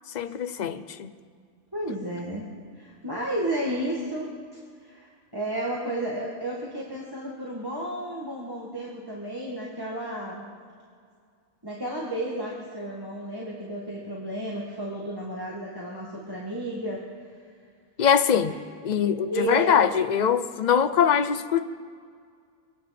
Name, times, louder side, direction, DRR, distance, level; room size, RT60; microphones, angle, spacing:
voice 1, 0.1-1.1 18.0-18.6 18.8-21.6, left 8 dB, 55° left, 11 dB, 0.5 m, -23 dB
voice 2, 1.7-2.5 2.7-10.4 11.6-17.0 18.4-18.6 18.9-19.8, right 1 dB, 15° right, -4 dB, 1.7 m, -32 dB
24.0 x 9.3 x 5.9 m, 2.1 s
omnidirectional pair, 1.6 m